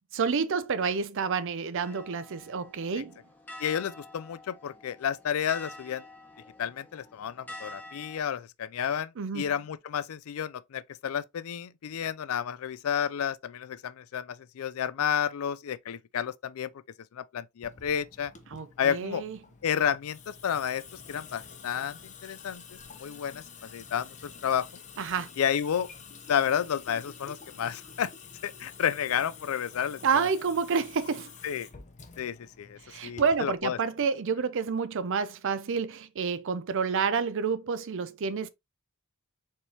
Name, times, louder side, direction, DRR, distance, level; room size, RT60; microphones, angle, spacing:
voice 1, 0.1-3.2 9.2-9.6 18.5-19.4 25.0-25.3 30.0-31.3 32.9-38.5, right 5 dB, 60° right, 0.5 m, -29 dB
sound 1, 1.8-8.2, left 1 dB, 10° left, 1.0 m, -48 dB
voice 2, 3.6-6.0 6.6-16.7 17.1-18.3 18.8-19.2 19.6-24.7 25.4-25.9 26.3-28.1 28.4-30.3 31.4-31.7 32.2-33.8, left 8 dB, 75° left, 0.4 m, -31 dB
Water tap faucet / Sink (filling or washing) / Drip, 17.6-33.6, left 5 dB, 35° left, 0.7 m, -49 dB
4.4 x 3.3 x 2.8 m
head